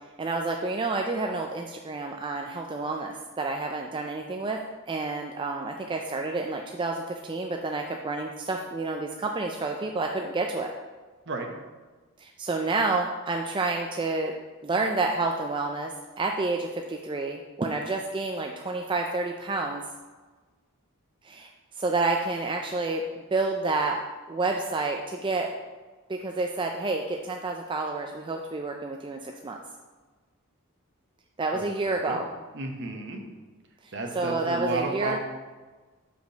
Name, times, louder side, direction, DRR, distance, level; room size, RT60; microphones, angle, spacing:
voice 1, 0.2-4.6 4.9-10.7 12.2-14.3 14.6-15.9 16.2-19.8 21.2-21.5 21.8-23.0 23.3-24.0 24.3-25.5 26.1-29.6 31.4-32.2 33.8-35.2, right 3 dB, 20° right, 2 dB, 0.3 m, -29 dB
voice 2, 31.5-32.2 32.5-33.3 33.9-35.2, right 2 dB, 55° right, 3 dB, 1.0 m, -33 dB
5.1 x 5.0 x 6.4 m, 1.3 s
head